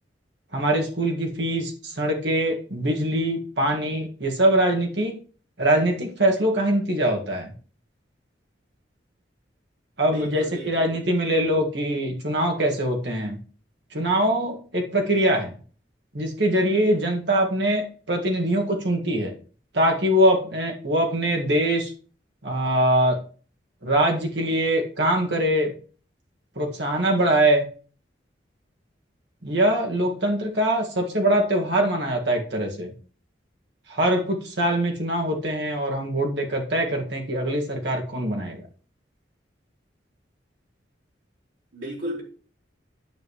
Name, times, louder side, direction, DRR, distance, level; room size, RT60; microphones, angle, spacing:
voice 1, 0.5-5.2 5.6-7.5 10.0-13.4 13.9-15.6 16.1-19.3 19.7-21.9 22.4-23.2 23.8-25.7 26.6-27.6 29.4-32.9 33.9-38.6, right 1 dB, 65° right, 1.9 m, -23 dB
voice 2, 10.0-11.0 41.7-42.2, right 1 dB, 85° right, 4.6 m, -34 dB
9.0 x 7.7 x 3.1 m
head